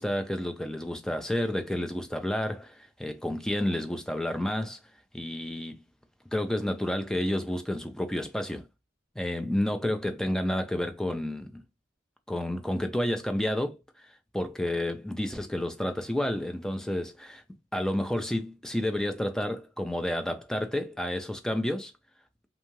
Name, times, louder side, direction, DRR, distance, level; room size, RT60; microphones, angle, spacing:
voice 1, 0.0-4.8 5.1-5.8 6.3-8.6 9.2-11.6 12.3-13.8 14.3-17.4 17.7-21.9, left 1 dB, 5° left, 0.3 m, -30 dB
2.6 x 2.3 x 3.0 m
head